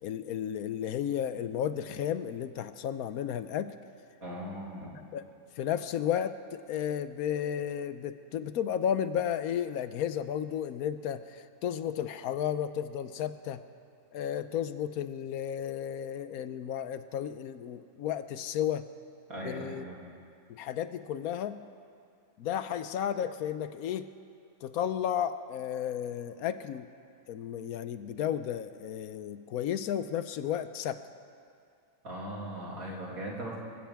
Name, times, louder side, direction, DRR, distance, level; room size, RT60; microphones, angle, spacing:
voice 1, 0.0-3.7 5.1-5.2 5.6-13.6 14.1-18.9 19.4-19.8 20.5-21.6 22.4-24.1 24.6-26.9 27.3-31.0, left 9 dB, 75° left, 12 dB, 1.1 m, -33 dB
voice 2, 4.2-5.0 19.3-20.0 32.0-33.6, right 1 dB, 70° right, -3 dB, 3.2 m, -39 dB
25.0 x 16.0 x 3.5 m, 2.3 s
omnidirectional pair, 1.6 m